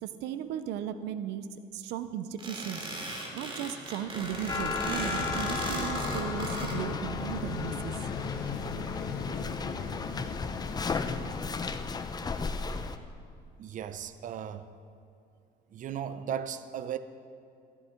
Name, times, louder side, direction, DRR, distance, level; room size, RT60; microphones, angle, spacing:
voice 1, 0.0-2.8 3.3-7.9, right 9 dB, 85° right, 11 dB, 0.6 m, -36 dB
sound 1, 2.4-6.8, right 2 dB, 30° right, 2.7 m, -36 dB
Vehicle, 4.0-13.0, left 6 dB, 70° left, 1.3 m, -39 dB
sound 2, 4.5-13.0, left 5 dB, 25° left, 0.7 m, -35 dB
voice 2, 13.6-14.7 15.7-17.0, right 9 dB, 50° right, 12 dB, 0.6 m, -36 dB
14.0 x 14.0 x 4.5 m, 2.4 s
cardioid pair, 110°, 17 cm